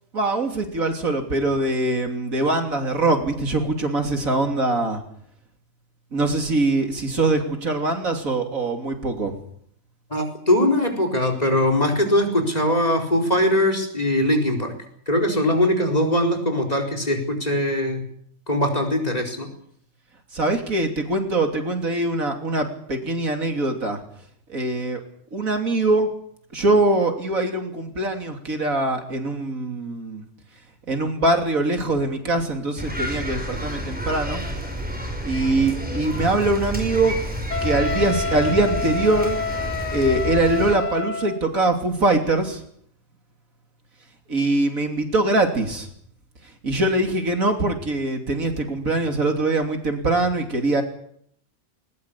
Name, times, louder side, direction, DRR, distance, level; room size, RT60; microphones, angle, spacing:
voice 1, 0.1-5.0 6.1-9.3 20.3-24.0 24.5-25.0 25.3-26.1 26.5-30.2 30.9-34.4 35.2-37.2 37.6-39.4 39.9-42.6 44.3-45.9 46.6-50.8, right 2 dB, 65° right, 4 dB, 3.5 m, -22 dB
voice 2, 10.1-14.7 15.1-18.0 18.5-19.5, left 1 dB, 25° left, 6 dB, 4.6 m, -21 dB
sound 1, 32.8-40.8, equal, 5° right, 5.3 m, -30 dB
Wind instrument woodwind instrument, 37.5-41.4, left 4 dB, 60° left, 1.7 m, -28 dB
21.0 x 20.5 x 8.5 m, 0.67 s
omnidirectional pair, 1.5 m